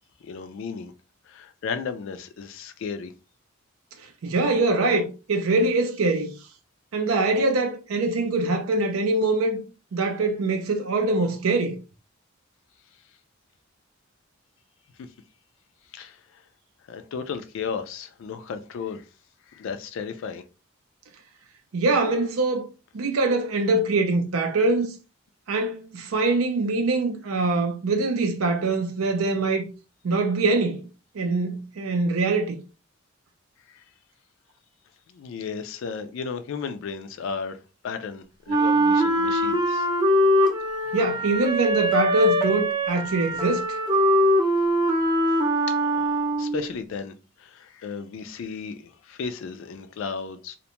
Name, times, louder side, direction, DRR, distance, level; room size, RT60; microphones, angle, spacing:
voice 1, 0.2-0.9 1.3-3.1 15.9-16.4 16.9-19.1 19.5-20.4 33.7-33.8 35.1-37.6 37.8-39.9 45.7-46.1 46.4-50.6, left 5 dB, 65° left, 0.3 m, -34 dB
voice 2, 4.2-6.3 6.9-9.6 9.9-11.7 21.7-22.6 22.9-24.9 25.5-29.7 30.0-30.9 31.1-32.6 40.9-43.6, right 2 dB, 75° right, 0.5 m, -23 dB
Wind instrument woodwind instrument, 38.5-46.7, equal, 20° right, 0.5 m, -22 dB
2.5 x 2.1 x 2.9 m
head